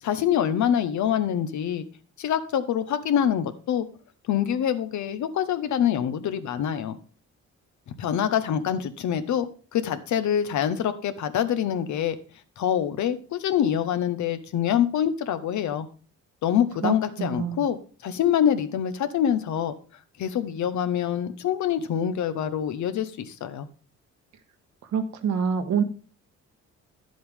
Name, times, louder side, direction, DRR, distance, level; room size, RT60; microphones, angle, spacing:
voice 1, 0.0-1.9 2.2-3.8 4.3-7.0 8.0-9.5 9.7-12.2 12.6-15.9 16.4-19.7 20.2-23.7, left 9 dB, 70° left, 11 dB, 1.0 m, -25 dB
voice 2, 16.8-17.6 24.9-25.8, right 6 dB, 70° right, 8 dB, 1.3 m, -26 dB
10.0 x 7.7 x 3.6 m, 0.37 s
cardioid pair, 90°, 30 cm